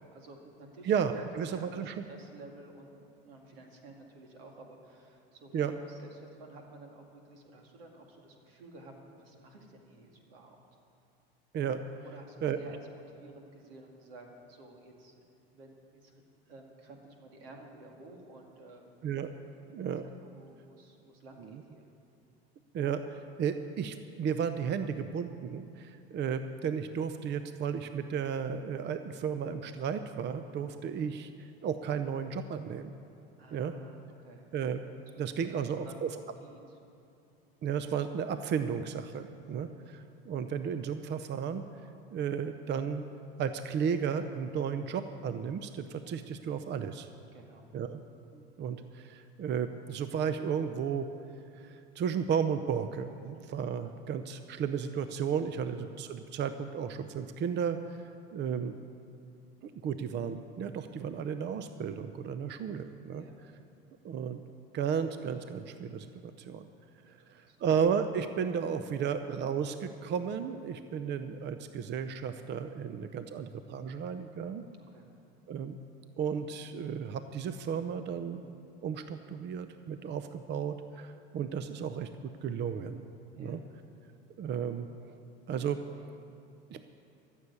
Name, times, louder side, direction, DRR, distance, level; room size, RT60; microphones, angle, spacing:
voice 1, 0.1-1.2 1.5-10.6 12.0-18.9 20.2-21.9 30.5-30.8 33.4-34.5 35.1-36.8 39.4-39.8 47.3-47.7 53.3-53.5 63.1-63.4 67.0-67.6 74.8-75.2 83.3-83.6, right 2 dB, 80° right, 2 dB, 2.3 m, -53 dB
voice 2, 0.8-1.9 5.5-5.7 11.5-11.8 12.4-12.6 19.0-19.3 19.7-20.0 21.4-21.5 22.7-33.0 33.5-33.7 34.5-34.8 35.2-36.1 37.6-41.6 42.1-43.1 43.4-47.1 47.7-48.0 48.3-51.1 51.5-58.7 59.6-63.2 64.0-64.4 64.7-66.7 67.1-74.6 75.5-75.8 76.2-83.0 83.4-83.6 84.4-85.2 85.5-86.2 86.7-86.8, right 7 dB, 40° right, 10 dB, 0.7 m, -34 dB
14.0 x 7.3 x 9.6 m, 2.7 s
hypercardioid pair, 90°, 29 cm